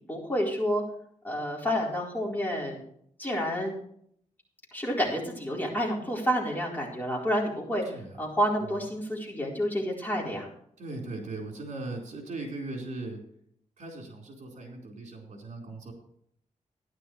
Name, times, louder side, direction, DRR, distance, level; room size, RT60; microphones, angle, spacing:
voice 1, 0.1-0.8 1.2-2.8 3.2-3.7 4.7-10.5, equal, 15° left, -3 dB, 4.3 m, -29 dB
voice 2, 7.9-8.2 10.8-13.2 13.8-15.9, right 2 dB, 65° right, 0 dB, 4.4 m, -39 dB
14.5 x 11.0 x 3.3 m, 0.65 s
wide cardioid pair, 125°, 13 cm